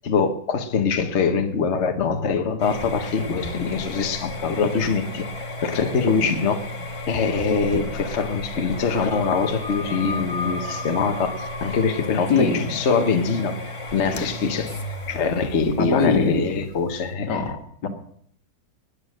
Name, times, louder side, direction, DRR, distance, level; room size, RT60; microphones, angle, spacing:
voice 1, 0.0-5.3 5.6-6.6 7.0-13.5 13.9-14.7 15.1-17.4, left 5 dB, 45° left, 6 dB, 1.4 m, -23 dB
sound 1, 2.6-17.1, left 1 dB, 20° left, 1.0 m, -34 dB
sound 2, 8.7-12.8, left 3 dB, 15° right, 3.3 m, -35 dB
voice 2, 12.3-12.7 15.8-16.4 17.3-17.9, left 5 dB, 80° left, 5 dB, 2.3 m, -22 dB
18.0 x 9.7 x 6.4 m, 0.67 s
omnidirectional pair, 1.8 m